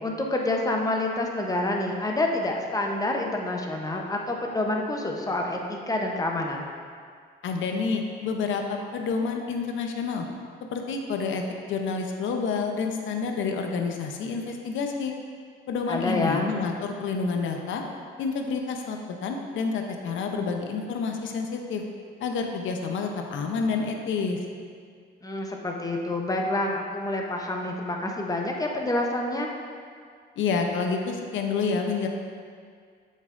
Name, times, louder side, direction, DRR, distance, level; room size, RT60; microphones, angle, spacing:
voice 1, 0.0-6.7 15.9-16.5 25.2-29.5, left 2 dB, 20° left, 0 dB, 0.8 m, -28 dB
voice 2, 7.4-10.3 10.7-15.1 15.7-17.8 18.2-21.8 22.2-24.4 30.4-32.1, left 5 dB, 75° left, 3 dB, 0.7 m, -28 dB
7.6 x 5.4 x 2.5 m, 2.1 s
cardioid pair, 90°, 20 cm